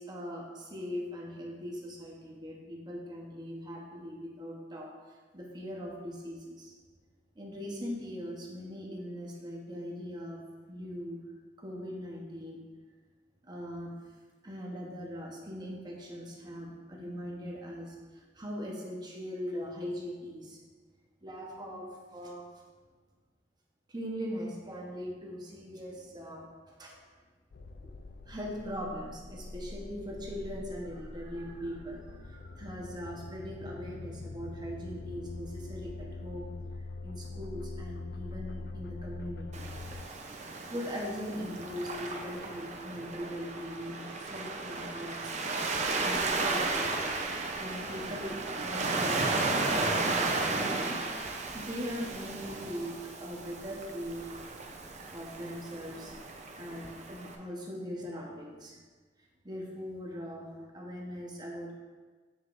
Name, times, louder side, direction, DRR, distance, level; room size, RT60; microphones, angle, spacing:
voice 1, 0.0-4.9 5.3-6.7 7.3-10.4 10.7-11.2 11.6-12.6 13.4-13.9 14.4-20.6 21.2-22.5 23.9-27.0 27.8-27.9 28.3-36.5 37.0-39.6 40.7-45.2 46.0-47.3 47.6-51.0 51.5-54.4 55.1-56.1 56.6-58.8 59.4-60.5 60.7-61.7, equal, 25° right, -1 dB, 1.0 m, -40 dB
sound 1, 27.5-40.0, left 2 dB, 60° left, 0.4 m, -43 dB
Waves surf, 39.5-57.4, right 3 dB, 40° right, 0.6 m, -34 dB
7.3 x 6.4 x 2.5 m, 1.4 s
head